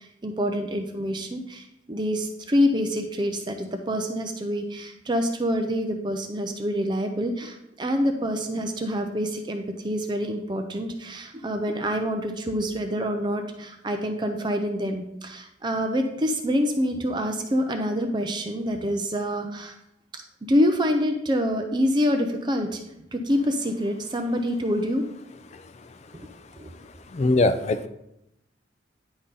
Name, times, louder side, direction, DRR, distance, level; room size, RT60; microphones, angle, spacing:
voice 1, 0.0-19.7 20.1-20.2 20.5-22.8 23.1-25.0 26.1-26.3 26.6-26.7, equal, 25° right, 5 dB, 0.5 m, -26 dB
voice 2, 27.1-27.9, left 2 dB, 40° left, 9 dB, 0.3 m, -22 dB
9.8 x 4.0 x 3.8 m, 0.83 s
head